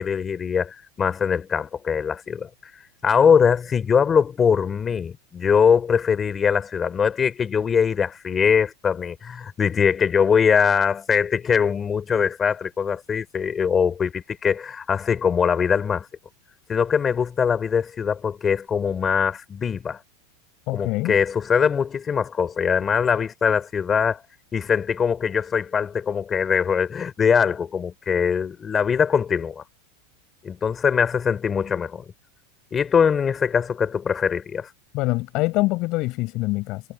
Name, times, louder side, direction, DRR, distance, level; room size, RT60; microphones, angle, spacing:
voice 1, 0.0-2.5 3.0-16.1 16.7-20.0 20.7-24.2 24.5-29.6 30.4-32.0 32.7-34.7, left 6 dB, 15° left, 3.7 m, -22 dB
voice 2, 20.7-21.2 34.9-36.8, left 21 dB, 40° left, 6.5 m, -24 dB
supercardioid pair, 170°, 0 cm